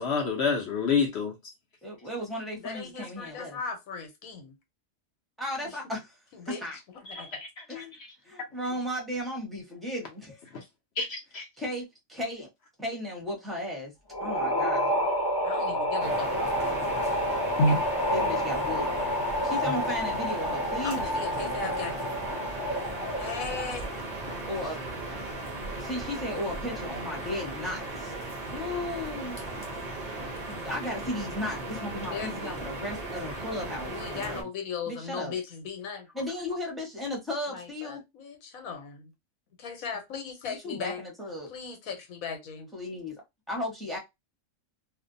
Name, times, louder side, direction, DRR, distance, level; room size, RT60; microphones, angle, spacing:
voice 1, 0.0-1.3 7.1-7.8 11.0-11.5 17.6-17.8, left 3 dB, 60° left, 0.8 m, -27 dB
voice 2, 1.8-3.6 5.4-6.1 6.5-6.8 7.7-10.5 11.6-12.5 12.8-13.9 14.2-14.9 16.5-17.0 18.1-18.9 19.4-21.6 24.4-24.8 25.8-28.1 28.5-29.4 30.5-34.5 34.9-35.3 36.1-38.0 40.5-41.5 42.7-44.0, left 1 dB, ahead, 0.6 m, -35 dB
voice 3, 2.6-4.5 5.6-5.7 6.3-6.6 7.1-7.3 15.4-16.6 20.8-22.0 23.2-24.1 32.0-32.7 33.9-36.1 37.5-39.1 39.6-41.0 41.5-42.7, left 6 dB, 80° left, 1.2 m, -38 dB
sound 1, 14.1-23.8, left 1 dB, 35° left, 0.3 m, -29 dB
sound 2, 16.0-34.4, right 2 dB, 50° right, 0.4 m, -37 dB
2.6 x 2.1 x 2.5 m
omnidirectional pair, 1.4 m